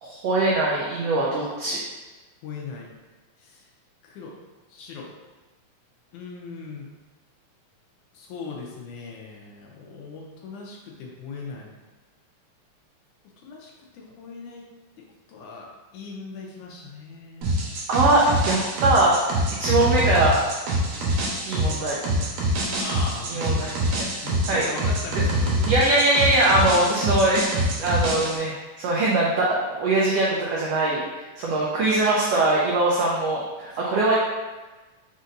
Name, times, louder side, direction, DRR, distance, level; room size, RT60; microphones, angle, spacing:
voice 1, 0.0-1.8 17.9-19.2 19.6-20.4 21.5-22.0 23.3-23.7 24.0-24.1 24.5-24.6 25.6-29.5 29.8-31.0 31.4-34.1, right 2 dB, 90° right, -4 dB, 1.4 m, -22 dB
voice 2, 2.4-2.9 3.4-3.7 4.0-4.4 4.7-5.1 6.1-6.9 8.1-11.7 13.4-14.7 15.0-17.5 21.6-21.8 22.8-23.7 24.2-25.9 33.7-33.8, left 4 dB, 80° left, -1 dB, 2.0 m, -39 dB
sound 1, 17.4-28.4, equal, 70° right, 2.1 m, -25 dB
5.2 x 4.1 x 2.5 m, 1.2 s
omnidirectional pair, 3.6 m